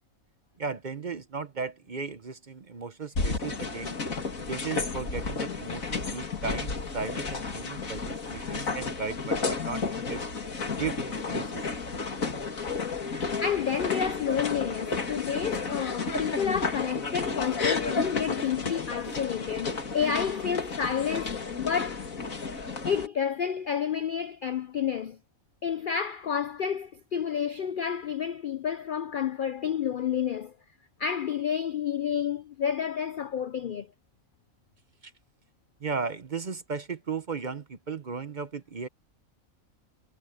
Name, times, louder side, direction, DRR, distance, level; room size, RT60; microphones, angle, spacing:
voice 1, 0.6-4.0 4.4-10.3 10.8-11.7 35.0-35.1 35.8-38.9, right 5 dB, 40° right, 0.8 m, -36 dB
sound 1, 3.2-23.1, left 4 dB, 75° left, 2.8 m, -32 dB
voice 2, 13.0-22.1 22.8-25.2 25.6-30.5 31.0-33.9, left 7 dB, 60° left, 0.5 m, -30 dB
omnidirectional pair, 1.4 m